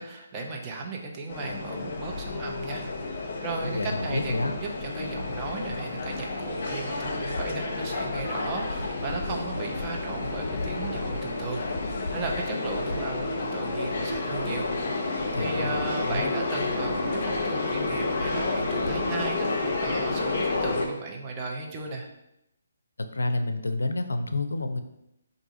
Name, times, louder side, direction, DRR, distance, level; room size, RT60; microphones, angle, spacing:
voice 1, 0.0-2.8 3.4-11.6 11.9-22.1, right 3 dB, 25° right, 0 dB, 0.7 m, -36 dB
sound 1, 1.3-20.9, left 3 dB, 45° left, 0.8 m, -30 dB
voice 2, 3.6-4.5 15.3-16.3 23.0-24.8, left 2 dB, 75° left, 8 dB, 0.4 m, -29 dB
4.6 x 2.6 x 3.9 m, 0.84 s
figure-of-eight pair, 140°, 0 cm